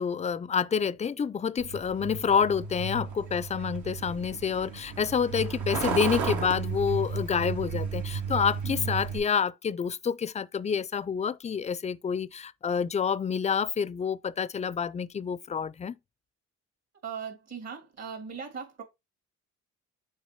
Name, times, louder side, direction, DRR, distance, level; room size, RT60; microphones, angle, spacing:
voice 1, 0.0-15.9, left 6 dB, 25° left, 0.4 m, -28 dB
Truck, 1.6-9.2, right 5 dB, 80° right, 1.6 m, -33 dB
voice 2, 17.0-18.8, right 6 dB, 60° right, 2.5 m, -39 dB
6.4 x 3.3 x 4.5 m
cardioid pair, 90°, 30 cm